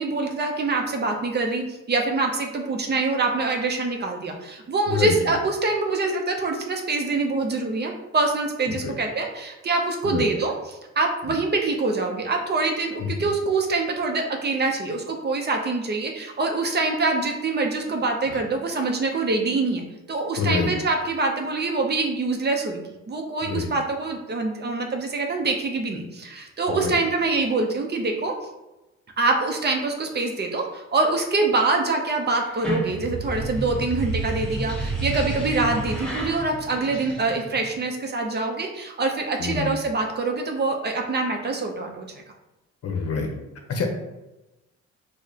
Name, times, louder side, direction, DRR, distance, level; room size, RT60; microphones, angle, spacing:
voice 1, 0.0-19.8 20.1-22.8 23.1-28.3 29.2-42.2, right 3 dB, 35° right, 2 dB, 0.5 m, -25 dB
voice 2, 20.4-20.7 23.4-23.7 26.7-26.9 39.4-39.7 42.8-43.3 43.7-43.9, left 5 dB, 55° left, 3 dB, 0.7 m, -26 dB
sound 1, 32.4-37.7, right 2 dB, 5° left, 1.1 m, -30 dB
4.6 x 2.1 x 2.7 m, 1.0 s
cardioid pair, 90°, 30 cm